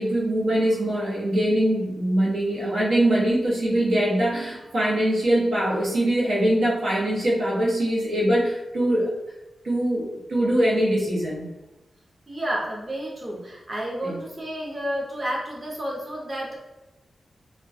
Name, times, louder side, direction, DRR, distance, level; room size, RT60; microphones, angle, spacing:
voice 1, 0.0-9.1 9.6-11.5 14.0-14.2, right 1 dB, 85° right, -6 dB, 0.8 m, -23 dB
voice 2, 12.3-16.5, equal, 30° right, -3 dB, 0.6 m, -31 dB
2.3 x 2.1 x 2.6 m, 1.0 s
cardioid pair, 80°, 0 cm